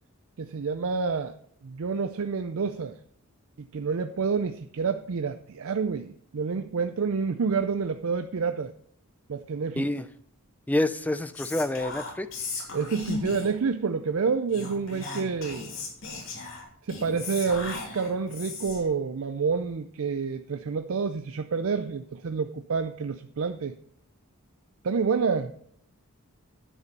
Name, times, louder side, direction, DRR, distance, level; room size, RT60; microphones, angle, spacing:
voice 1, 0.4-1.3 1.6-3.0 3.6-8.7 9.3-9.9 12.7-15.7 16.8-23.8 24.8-25.5, right 5 dB, 65° right, 0.5 m, -28 dB
voice 2, 9.8-10.1 10.7-12.4, left 1 dB, 5° left, 0.4 m, -28 dB
Whispering, 11.3-13.6 14.5-18.9, left 3 dB, 60° left, 2.8 m, -37 dB
9.9 x 6.8 x 5.3 m
head